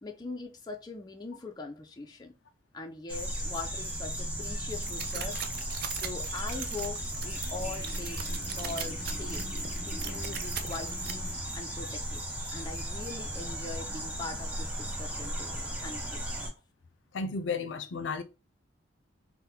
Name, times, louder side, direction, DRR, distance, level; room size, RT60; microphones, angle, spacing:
voice 1, 0.0-2.4 2.7-5.4 5.9-9.5 9.9-12.2 12.5-16.2, left 3 dB, 20° left, 0.4 m, -42 dB
sound 1, 3.1-16.5, equal, 10° right, 0.7 m, -36 dB
sound 2, 4.8-11.1, right 8 dB, 55° right, 0.4 m, -40 dB
sound 3, 6.7-11.6, left 1 dB, 25° right, 1.5 m, -48 dB
voice 2, 17.1-18.2, left 4 dB, 80° left, 0.5 m, -33 dB
4.0 x 2.1 x 2.7 m
head